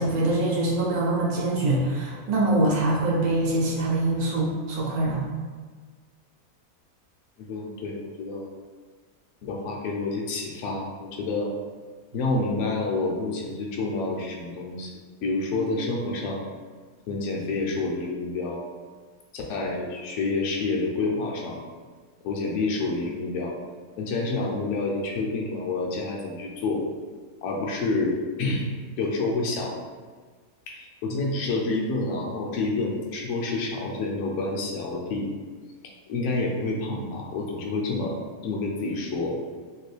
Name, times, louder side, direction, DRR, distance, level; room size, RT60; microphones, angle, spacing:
voice 1, 0.0-5.3, right 2 dB, 80° right, -4 dB, 1.2 m, -24 dB
voice 2, 7.4-8.5 9.4-11.5 12.1-14.9 15.2-16.4 17.1-18.6 19.3-21.6 22.2-23.5 24.0-26.8 27.4-28.6 29.0-29.7 30.7-35.3 36.1-38.2 38.4-39.4, left 3 dB, 65° left, -1 dB, 0.8 m, -28 dB
2.9 x 2.5 x 3.2 m, 1.5 s
omnidirectional pair, 1.6 m